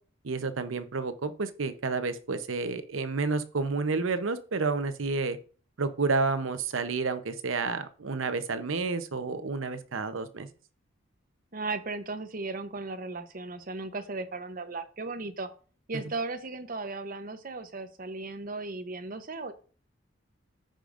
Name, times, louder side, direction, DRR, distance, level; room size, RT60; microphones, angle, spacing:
voice 1, 0.2-5.4 5.8-10.5, right 4 dB, 85° right, 11 dB, 0.8 m, -30 dB
voice 2, 11.5-15.5 15.9-19.5, right 3 dB, 45° right, 8 dB, 0.8 m, -36 dB
14.5 x 5.1 x 2.5 m, 0.40 s
head